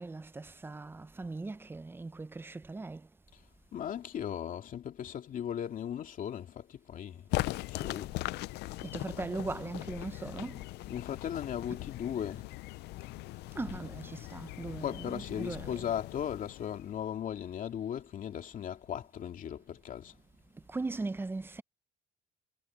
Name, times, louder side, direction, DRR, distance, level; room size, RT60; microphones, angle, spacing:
voice 1, 0.0-3.1 8.8-10.6 13.5-15.9 20.7-21.6, right 3 dB, 15° right, 0.6 m, -39 dB
voice 2, 3.7-8.1 10.9-12.5 14.8-20.1, left 9 dB, 55° left, 2.5 m, -37 dB
sound 1, 7.3-17.1, left 19 dB, 80° left, 0.5 m, -40 dB
cardioid pair, 110°, 17 cm